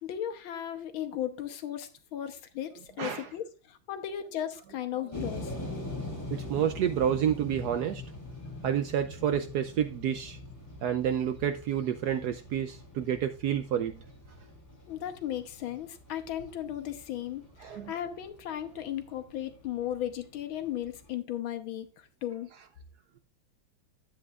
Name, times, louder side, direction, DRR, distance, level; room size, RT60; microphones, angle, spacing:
voice 1, 0.0-5.5 14.9-22.5, left 11 dB, 85° left, 1.8 m, -36 dB
voice 2, 3.0-3.3 5.8-5.9 6.3-8.0 8.6-10.4 10.8-14.0 17.6-17.9, right 9 dB, 75° right, 0.9 m, -29 dB
sound 1, 5.1-21.1, left 1 dB, 10° left, 2.6 m, -43 dB
10.5 x 8.5 x 2.4 m
omnidirectional pair, 2.2 m